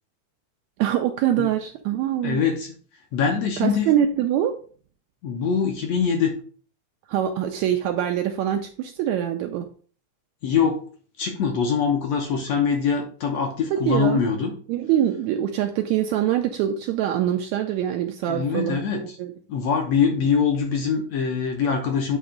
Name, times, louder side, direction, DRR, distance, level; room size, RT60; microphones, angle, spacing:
voice 1, 0.8-2.4 3.6-4.6 7.1-9.7 13.7-14.2 14.7-19.3, right 10 dB, 80° right, 5 dB, 1.7 m, -24 dB
voice 2, 2.2-2.7 3.1-3.9 5.2-6.3 10.4-10.8 11.2-14.5 18.3-19.2 19.5-22.2, left 6 dB, 65° left, 3 dB, 1.7 m, -23 dB
8.8 x 3.1 x 5.0 m, 0.42 s
omnidirectional pair, 3.7 m